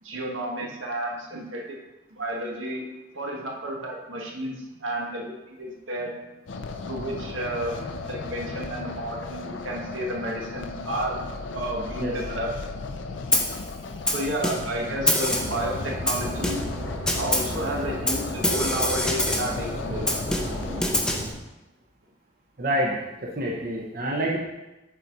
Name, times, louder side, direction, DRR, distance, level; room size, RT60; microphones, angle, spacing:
voice 1, 0.0-1.8 2.1-2.8 3.1-6.1 6.8-11.2 11.5-12.5 14.1-16.7 17.2-20.2, right 1 dB, 85° right, -1 dB, 1.5 m, -31 dB
sound 1, 6.5-20.8, left 3 dB, 70° left, 0.5 m, -36 dB
Snare drum, 13.3-13.6 14.1-14.8 15.1-15.6 16.1-16.8 17.1-17.6 18.1-19.6 20.1-21.3, left 1 dB, 5° left, 0.6 m, -25 dB
sound 2, 15.3-21.3, equal, 25° right, 1.7 m, -34 dB
voice 2, 22.6-24.4, right 1 dB, 45° right, -3 dB, 0.9 m, -27 dB
7.3 x 4.1 x 5.3 m, 1.0 s
head